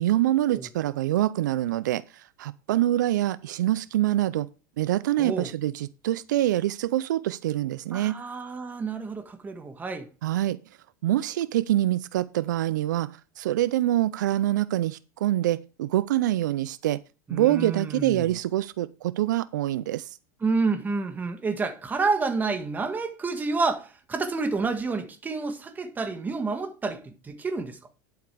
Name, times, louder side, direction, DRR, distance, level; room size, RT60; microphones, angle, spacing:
voice 1, 0.0-4.5 4.8-8.2 10.2-10.6 11.0-17.0 17.3-20.1, right 14 dB, 85° right, 0.5 m, -25 dB
voice 2, 5.2-5.5 7.9-10.1 17.3-18.3 20.4-27.8, right 4 dB, 20° right, 1.7 m, -29 dB
10.5 x 8.0 x 3.4 m
supercardioid pair, 115°, 10 cm